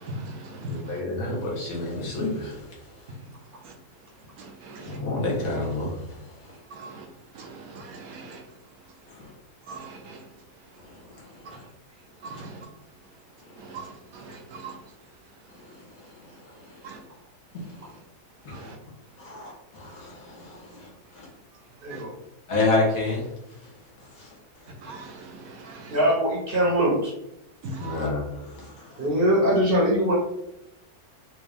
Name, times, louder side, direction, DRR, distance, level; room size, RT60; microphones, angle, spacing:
voice 1, 0.7-2.7 4.8-6.2 9.1-9.3 11.5-11.6 12.3-12.4 17.5-17.7 18.4-18.7 19.2-21.3 22.5-23.3 24.2-24.3 27.8-29.1, left 2 dB, 65° left, -3 dB, 1.6 m, -29 dB
voice 2, 6.7-7.0 7.4-7.5 7.7-8.4 9.7-10.2 12.2-12.5 13.7-13.8 14.5-14.7 16.8-17.0 21.9-22.0 24.8-25.1 25.6-25.8 27.8-28.0, right 3 dB, 75° right, 2 dB, 1.0 m, -39 dB
voice 3, 25.9-27.1 29.0-30.2, right 1 dB, 45° right, -3 dB, 0.8 m, -22 dB
3.5 x 2.5 x 3.4 m, 0.82 s
omnidirectional pair, 1.6 m